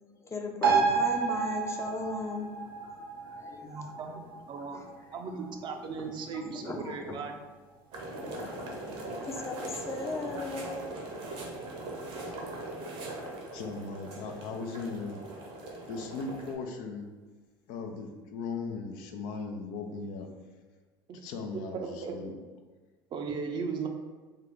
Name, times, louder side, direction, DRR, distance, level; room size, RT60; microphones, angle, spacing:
voice 1, 0.2-2.5 2.8-4.4 4.7-4.9 5.3-7.3 8.2-10.9, left 3 dB, 25° left, 3 dB, 0.6 m, -39 dB
sound 1, 0.6-7.6 7.9-8.0, right 5 dB, 90° right, 0.6 m, -32 dB
voice 2, 3.6-4.2 4.5-4.8 5.1-7.3 21.1-21.2 21.5-22.4 23.1-23.9, right 5 dB, 45° right, 3 dB, 0.6 m, -37 dB
sound 2, 7.9-16.5, right 2 dB, 60° right, 0.9 m, -40 dB
voice 3, 13.5-15.2 15.9-17.1 17.7-20.3 21.1-22.3, left 4 dB, 65° left, 4 dB, 0.5 m, -38 dB
3.7 x 2.3 x 3.5 m, 1.3 s
hypercardioid pair, 70°, 11 cm